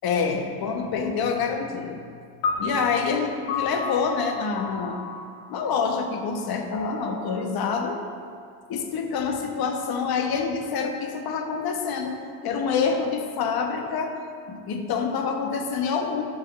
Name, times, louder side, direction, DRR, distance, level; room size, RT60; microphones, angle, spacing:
voice 1, 0.0-2.0 2.6-5.0 5.5-8.0 8.7-12.2 12.4-14.2 14.5-16.2, left 5 dB, 55° left, 4 dB, 1.1 m, -27 dB
sound 1, 2.4-8.9, left 4 dB, 70° left, 1.3 m, -34 dB
12.5 x 5.0 x 3.1 m, 2.2 s
hypercardioid pair, 70°, 44 cm